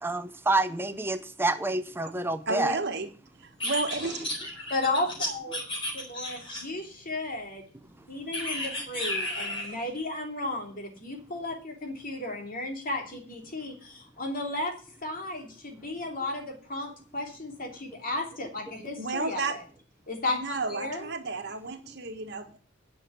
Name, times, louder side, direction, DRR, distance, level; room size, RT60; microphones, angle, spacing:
voice 1, 0.0-2.8, right 2 dB, 10° right, 0.7 m, -28 dB
voice 2, 2.5-3.1 3.4-4.3 19.0-19.6 20.3-22.6, right 3 dB, 60° right, 1.7 m, -32 dB
sound 1, 3.6-6.9 8.3-9.8, left 1 dB, 25° left, 4.1 m, -33 dB
voice 3, 4.7-5.6 5.9-7.7 8.1-14.7 15.0-19.6 20.1-21.1, left 2 dB, 45° left, 2.9 m, -34 dB
10.0 x 6.0 x 8.3 m
head